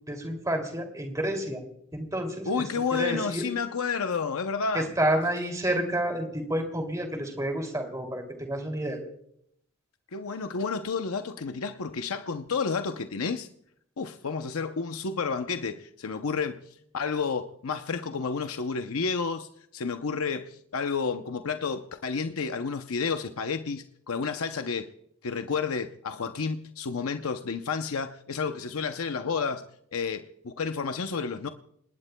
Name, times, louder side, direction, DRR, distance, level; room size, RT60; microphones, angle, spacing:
voice 1, 0.1-1.6 1.9-2.5 2.9-3.5 4.7-9.0, right 1 dB, 15° right, 2.6 m, -29 dB
voice 2, 2.4-4.9 10.1-13.5 14.0-16.7 16.9-24.9 25.2-31.5, left 5 dB, 85° left, 0.7 m, -31 dB
28.0 x 19.5 x 2.2 m
head